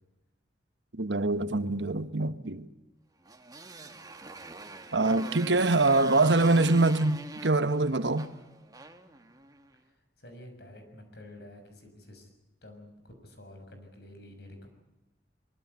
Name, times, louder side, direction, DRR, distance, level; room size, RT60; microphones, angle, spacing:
voice 1, 0.9-2.7 4.9-8.3, right 2 dB, 80° right, 1.3 m, -24 dB
Motorcycle, 3.2-9.7, right 3 dB, 20° right, 1.7 m, -44 dB
voice 2, 10.2-12.3 12.6-14.7, left 1 dB, 65° left, 6.5 m, -49 dB
23.5 x 23.5 x 8.3 m
head